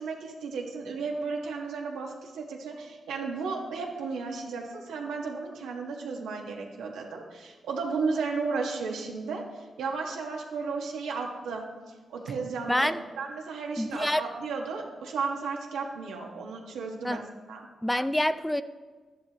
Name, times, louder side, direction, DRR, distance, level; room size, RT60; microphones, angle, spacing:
voice 1, 0.0-11.6 12.1-17.2 17.5-17.6, right 4 dB, 90° right, 0 dB, 1.5 m, -34 dB
voice 2, 12.7-13.0 13.8-14.2 17.0-17.2 17.8-18.6, left 1 dB, 10° left, 11 dB, 0.5 m, -26 dB
12.5 x 11.0 x 3.0 m, 1.4 s
supercardioid pair, 50°, 0 cm